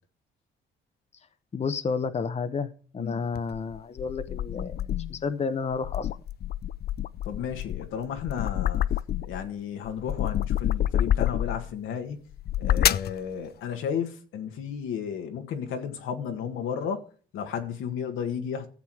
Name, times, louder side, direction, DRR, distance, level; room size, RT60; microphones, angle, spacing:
voice 1, 1.5-6.1, left 5 dB, 35° left, 0.9 m, -31 dB
sound 1, 3.3-5.2 5.7-9.5 9.8-11.7 12.3-13.2, left 11 dB, 55° left, 0.5 m, -28 dB
voice 2, 7.2-9.0 9.2-12.2 12.6-17.1 17.3-18.7, left 7 dB, 85° left, 1.8 m, -33 dB
13.5 x 7.5 x 4.7 m
cardioid pair, 90°, 20 cm